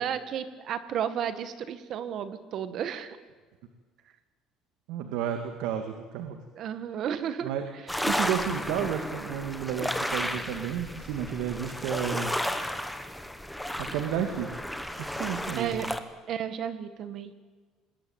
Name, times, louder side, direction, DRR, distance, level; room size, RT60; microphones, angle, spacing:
voice 1, 0.0-3.2 6.5-7.5 15.5-15.9 16.3-17.3, right 9 dB, 45° right, 12 dB, 1.8 m, -33 dB
voice 2, 4.9-6.4 7.4-7.6 8.1-12.3 13.8-14.5 15.0-15.9, right 9 dB, 80° right, 6 dB, 2.2 m, -32 dB
sound 1, 7.9-16.0, equal, ahead, 1.4 m, -33 dB
25.5 x 20.5 x 8.9 m, 1.4 s
cardioid pair, 170°, 0 cm